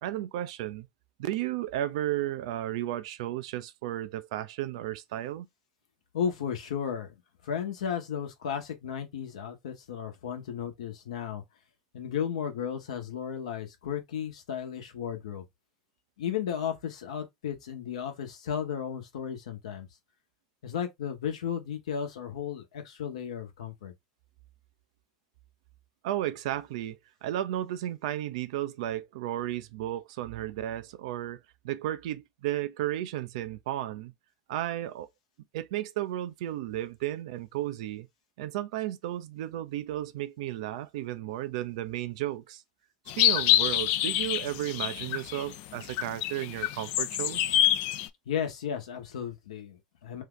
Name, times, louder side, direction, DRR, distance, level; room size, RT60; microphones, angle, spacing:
voice 1, 0.0-0.9 1.2-5.5 26.0-34.1 34.5-35.1 35.5-38.1 38.4-42.6 43.2-47.6, right 13 dB, 65° right, 0.4 m, -33 dB
voice 2, 6.1-7.1 7.4-11.4 11.9-15.4 16.2-19.9 20.6-23.9 48.3-50.2, left 8 dB, 75° left, 0.9 m, -34 dB
sound 1, 43.1-45.5 45.8-48.1, left 13 dB, 55° left, 0.3 m, -26 dB
2.7 x 2.4 x 3.7 m
hypercardioid pair, 80°, 4 cm